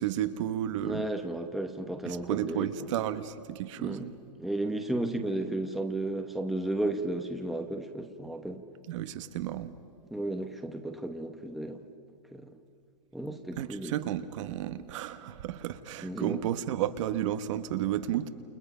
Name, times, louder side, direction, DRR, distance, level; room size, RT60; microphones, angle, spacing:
voice 1, 0.0-1.0 2.0-4.1 8.9-9.7 13.6-18.3, right 12 dB, 50° right, 10 dB, 1.3 m, -32 dB
voice 2, 0.8-2.7 3.8-4.1 4.4-8.6 10.1-11.8 12.3-12.5 13.1-14.0 16.0-16.4, right 1 dB, ahead, 4 dB, 1.0 m, -33 dB
29.0 x 29.0 x 5.6 m, 2.2 s
hypercardioid pair, 150°, 21 cm